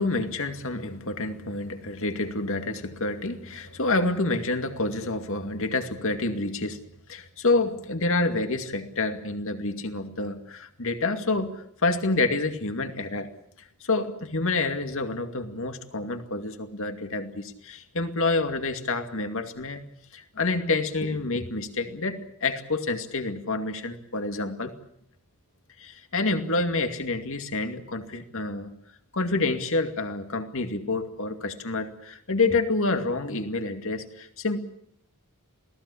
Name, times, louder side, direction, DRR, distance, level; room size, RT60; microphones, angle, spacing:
voice 1, 0.0-6.8 7.1-11.6 11.8-13.3 13.8-19.8 20.1-24.7 25.8-28.7 29.1-34.6, left 3 dB, 60° left, 7 dB, 2.4 m, -28 dB
27.5 x 18.5 x 8.6 m, 0.72 s
head